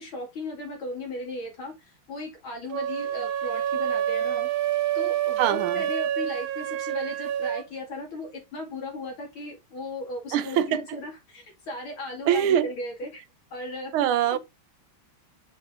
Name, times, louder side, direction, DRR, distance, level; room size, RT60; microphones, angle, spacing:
voice 1, 0.0-4.5 4.9-13.1 13.5-13.9 14.2-14.4, left 2 dB, 75° left, 3.2 m, -36 dB
sound 1, 2.7-7.7, right 10 dB, 55° right, 1.0 m, -28 dB
voice 2, 5.4-5.8 10.3-11.0 12.3-12.7 13.9-14.4, right 10 dB, 90° right, 1.6 m, -23 dB
6.4 x 5.8 x 3.6 m
omnidirectional pair, 2.3 m